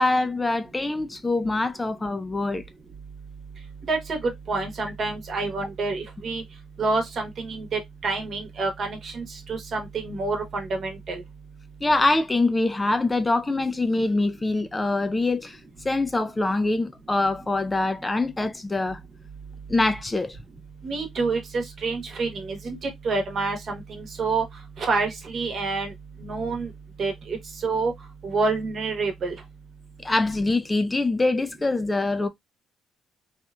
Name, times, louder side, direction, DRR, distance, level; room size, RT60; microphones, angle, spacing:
voice 1, 0.0-2.6 11.8-15.6 15.8-19.0 19.7-20.4 30.0-32.3, left 2 dB, 20° left, 0.3 m, -24 dB
voice 2, 3.9-6.4 6.8-11.2 20.8-24.5 24.8-25.9 26.2-26.7 27.0-27.9 28.2-29.4, right 3 dB, 55° right, 1.0 m, -28 dB
2.9 x 2.3 x 2.2 m
cardioid pair, 90°, 0 cm